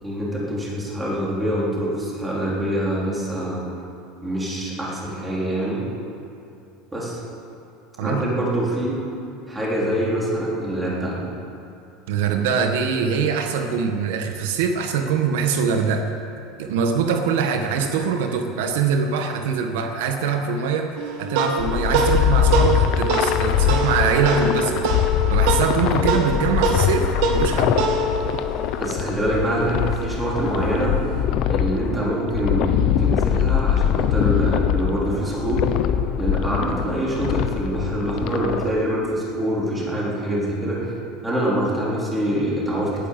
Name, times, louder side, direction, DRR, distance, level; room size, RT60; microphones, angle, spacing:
voice 1, 0.0-3.7 4.2-5.8 6.9-7.2 8.0-9.0 9.5-11.2 28.8-31.0 31.5-35.7 36.2-40.9 41.2-43.1, right 1 dB, 10° right, -5 dB, 3.8 m, -25 dB
voice 2, 12.1-16.0 16.6-20.9 21.2-24.8 25.3-27.7, right 6 dB, 80° right, 4 dB, 1.5 m, -23 dB
sound 1, 21.0-29.7, right 3 dB, 60° right, 2.3 m, -25 dB
sound 2, 21.6-38.7, left 10 dB, 45° left, 0.8 m, -23 dB
18.5 x 10.5 x 7.5 m, 2.7 s
cardioid pair, 165°, 0 cm